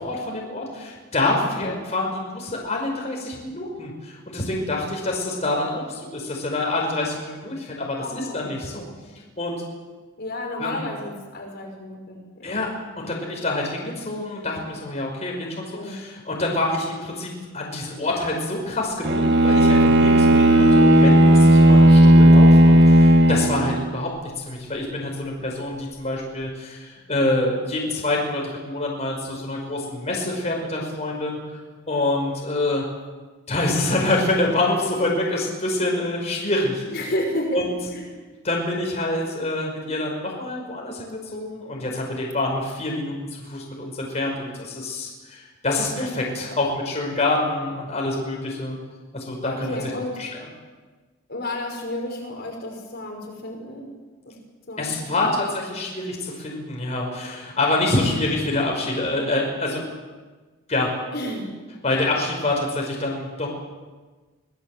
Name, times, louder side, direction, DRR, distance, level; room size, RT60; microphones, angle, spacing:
voice 1, 0.0-8.8 9.4-9.6 10.6-10.9 12.4-12.7 13.0-24.1 24.4-31.4 31.9-32.8 33.5-37.1 37.5-37.7 38.4-48.7 49.1-49.8 50.2-50.3 54.8-59.8 60.7-60.9 61.8-63.5, left 2 dB, 30° left, -1 dB, 5.1 m, -26 dB
voice 2, 8.0-8.5 10.2-12.6 15.7-16.0 36.9-37.6 37.9-38.1 49.4-50.2 51.3-53.9 54.3-54.4 54.7-55.4 61.1-61.5, left 1 dB, 50° left, 1 dB, 5.3 m, -31 dB
Bowed string instrument, 19.0-23.9, right 1 dB, 55° right, 1.9 m, -13 dB
25.5 x 18.0 x 7.6 m, 1.3 s
head